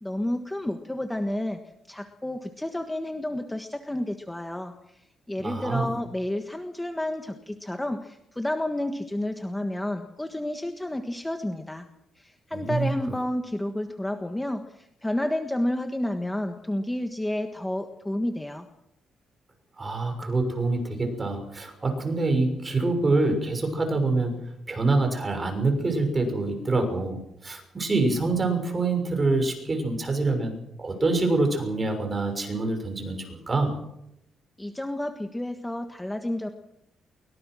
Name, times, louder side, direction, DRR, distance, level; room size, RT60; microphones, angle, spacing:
voice 1, 0.0-1.6 1.9-11.9 12.2-18.7 34.6-36.5, left 1 dB, 10° left, 5 dB, 1.5 m, -30 dB
voice 2, 5.4-5.9 12.5-12.9 19.8-24.4 24.7-30.5 30.8-33.8, right 3 dB, 25° right, 5 dB, 6.3 m, -26 dB
23.5 x 22.5 x 6.3 m, 0.82 s
cardioid pair, 135°, 0 cm